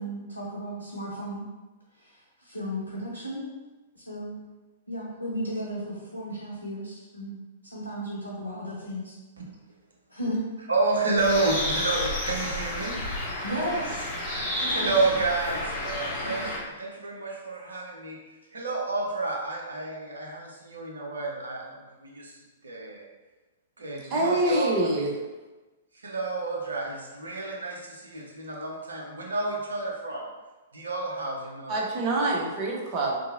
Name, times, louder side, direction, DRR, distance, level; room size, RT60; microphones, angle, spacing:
voice 1, 0.0-1.4 1.9-3.5 3.9-4.4 4.9-9.2 10.1-10.4 13.4-14.1 14.5-14.9 16.2-16.5, equal, 90° left, -6 dB, 0.5 m, -34 dB
voice 2, 10.7-13.0 14.7-16.5 16.8-18.2 18.5-22.3 22.6-23.1 23.8-24.9 26.0-30.3 30.7-31.9, right 3 dB, 75° right, -2 dB, 0.6 m, -30 dB
Bird, 11.2-16.6, left 1 dB, 30° left, 0.8 m, -31 dB
voice 3, 24.1-25.1 31.7-33.2, right 2 dB, 35° right, -3 dB, 0.6 m, -25 dB
2.7 x 2.6 x 2.5 m, 1.2 s
figure-of-eight pair, 110°, 0 cm